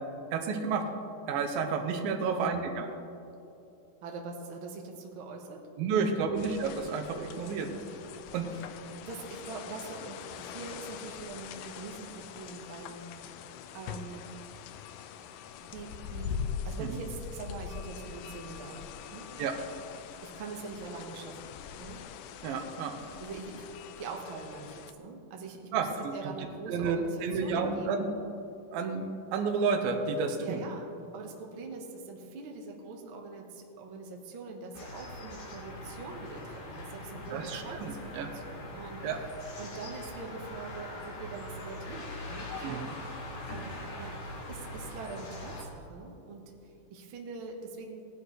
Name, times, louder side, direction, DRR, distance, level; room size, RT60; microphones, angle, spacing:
voice 1, 0.3-0.8 1.3-2.9 5.8-7.7 8.3-8.5 16.8-16.9 19.4-19.6 22.4-23.0 25.7-25.9 26.2-26.3 26.7-28.1 28.7-30.6 37.3-38.3 39.0-39.2 42.6-42.9, right 5 dB, 80° right, 5 dB, 2.7 m, -31 dB
voice 2, 2.2-2.7 4.0-5.7 5.9-6.4 8.5-8.7 9.0-13.0 13.7-14.4 15.6-19.3 20.2-21.5 21.8-22.0 23.2-28.1 30.4-30.8 31.1-39.3 39.6-43.0 43.5-44.2 44.5-48.1, right 3 dB, 60° right, 1 dB, 1.3 m, -43 dB
sound 1, 6.4-24.9, left 7 dB, 80° left, 1.9 m, -43 dB
sound 2, 34.7-45.6, left 1 dB, 60° left, 3.6 m, -42 dB
18.5 x 10.5 x 3.2 m, 2.8 s
omnidirectional pair, 4.1 m